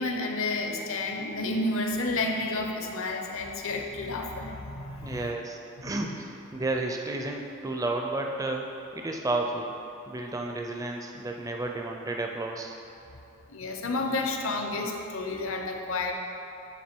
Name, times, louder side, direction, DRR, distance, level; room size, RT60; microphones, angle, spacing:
voice 1, 0.0-5.3 5.8-5.9 13.5-16.1, left 2 dB, 65° left, 3 dB, 0.7 m, -31 dB
voice 2, 5.0-9.7 10.1-12.7, right 2 dB, 15° right, 2 dB, 0.4 m, -32 dB
9.2 x 3.7 x 4.4 m, 2.7 s
head